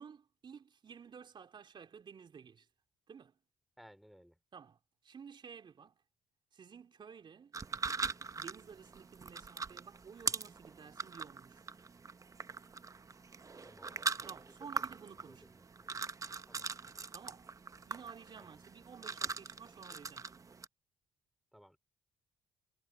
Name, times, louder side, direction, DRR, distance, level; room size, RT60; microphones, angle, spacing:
voice 1, 0.0-2.7 3.1-3.4 4.5-6.0 6.5-7.6 8.3-11.6 14.3-15.4 17.1-17.5 17.8-20.5, right 6 dB, 45° right, 3.8 m, -53 dB
voice 2, 3.8-4.4 13.6-16.0 16.4-16.7 18.4-18.6 21.5-21.8, equal, ahead, 3.4 m, -61 dB
sound 1, 7.5-20.6, right 4 dB, 30° right, 1.1 m, -42 dB
hypercardioid pair, 55°, 11 cm